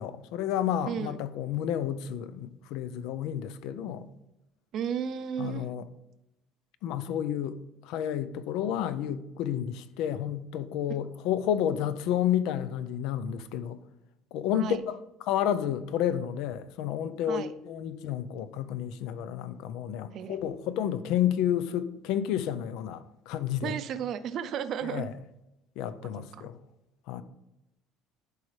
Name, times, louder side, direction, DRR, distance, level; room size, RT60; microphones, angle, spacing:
voice 1, 0.0-4.1 5.4-5.9 6.8-13.8 14.3-23.8 24.8-25.1 25.8-26.6 27.1-27.2, left 10 dB, 75° left, 0.5 m, -31 dB
voice 2, 0.9-1.2 4.7-5.7 14.5-14.8 17.3-17.5 20.1-20.4 23.6-25.1 26.0-26.1 26.4-26.5, right 8 dB, 50° right, 0.5 m, -33 dB
11.5 x 4.8 x 3.3 m
cardioid pair, 140°, 0 cm